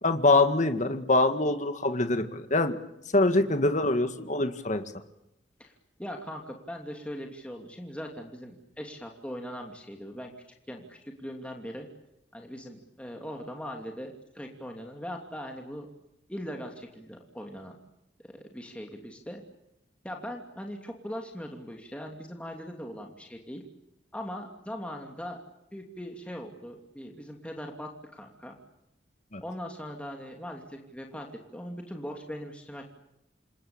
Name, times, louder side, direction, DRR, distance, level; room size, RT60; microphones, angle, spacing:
voice 1, 0.0-2.8 3.1-4.8 29.3-29.4, left 2 dB, 40° left, 8 dB, 1.9 m, -24 dB
voice 2, 6.0-10.3 10.7-11.9 12.3-15.9 16.3-17.8 18.2-19.4 20.0-23.6 24.1-25.4 25.7-28.6 29.4-31.3 31.5-32.9, equal, 5° left, 2 dB, 2.8 m, -40 dB
28.0 x 23.0 x 8.9 m, 0.85 s
head